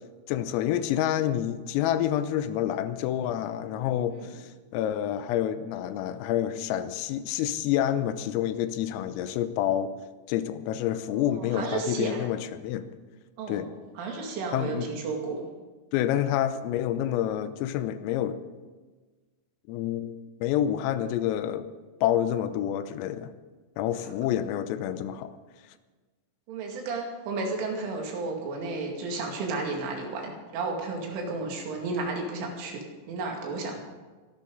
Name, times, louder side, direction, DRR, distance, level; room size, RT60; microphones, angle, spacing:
voice 1, 0.3-9.9 10.3-12.9 13.5-13.7 14.5-14.9 15.9-18.4 19.7-21.7 22.0-23.3 23.8-25.3, left 11 dB, 85° left, 11 dB, 3.5 m, -28 dB
voice 2, 11.2-12.3 13.4-13.7 14.0-15.4 23.9-24.1 26.5-33.8, right 3 dB, 70° right, 1 dB, 4.7 m, -33 dB
23.5 x 12.0 x 3.9 m, 1.3 s
omnidirectional pair, 5.9 m